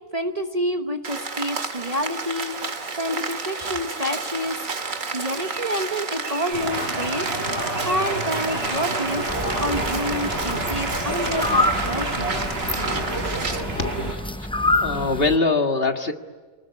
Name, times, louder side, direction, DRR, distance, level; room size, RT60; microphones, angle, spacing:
voice 1, 0.1-4.6 5.1-7.3 7.8-9.2 9.6-12.3 13.9-14.1, equal, 30° right, 6 dB, 1.2 m, -28 dB
Rain, 1.0-13.6, right 4 dB, 70° right, 2.5 m, -31 dB
sound 1, 6.5-14.1, right 1 dB, 45° right, 5.2 m, -28 dB
sound 2, 9.3-15.4, left 2 dB, 10° left, 0.3 m, -27 dB
voice 2, 13.8-14.2 14.8-16.1, left 3 dB, 45° left, 5 dB, 2.0 m, -22 dB
28.5 x 19.5 x 9.8 m, 1.5 s
omnidirectional pair, 1.4 m